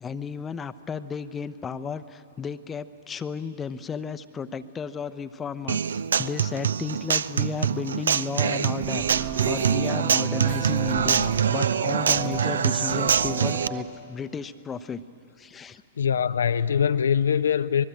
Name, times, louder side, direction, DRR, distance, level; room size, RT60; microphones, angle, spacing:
voice 1, 0.0-5.8 6.2-15.0 15.4-15.8, left 6 dB, 15° left, 0.7 m, -33 dB
Human voice / Acoustic guitar, 5.7-13.7, right 7 dB, 65° right, 0.5 m, -24 dB
sound 1, 8.8-13.8, right 7 dB, 35° right, 1.4 m, -34 dB
voice 2, 16.0-17.8, left 7 dB, 65° left, 0.5 m, -23 dB
25.0 x 21.0 x 8.8 m
figure-of-eight pair, 105°, 0 cm